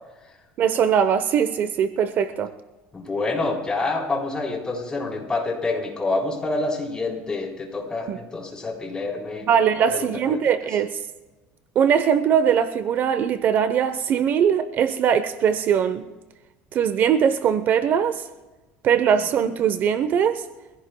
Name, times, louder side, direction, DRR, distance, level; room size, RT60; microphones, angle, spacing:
voice 1, 0.6-2.5 8.1-8.2 9.5-11.0 11.7-16.0 16.7-18.2 18.8-20.4, right 8 dB, 45° right, 0.8 m, -21 dB
voice 2, 2.9-9.4 9.9-10.4, left 3 dB, 20° left, 3.7 m, -27 dB
25.5 x 16.0 x 2.3 m
cardioid pair, 125°, 4 cm